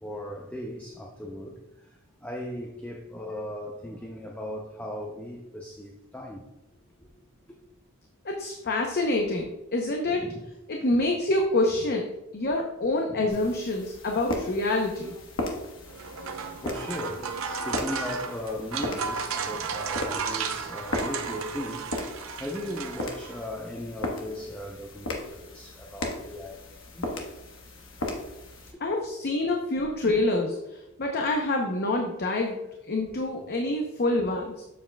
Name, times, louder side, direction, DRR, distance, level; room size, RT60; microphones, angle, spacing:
voice 1, 0.0-1.6 2.2-6.4 10.1-10.4 13.1-13.4 16.4-21.9 22.4-26.6 26.9-27.1, left 1 dB, 5° left, 0 dB, 0.5 m, -37 dB
voice 2, 8.2-10.3 10.7-15.1 28.8-32.6 32.9-34.6, left 2 dB, 45° left, 1 dB, 0.7 m, -27 dB
sound 1, 13.3-28.7, left 1 dB, 60° left, 1.1 m, -37 dB
sound 2, 15.9-23.5, right 5 dB, 65° right, 0.6 m, -34 dB
7.3 x 7.1 x 2.2 m, 0.95 s
head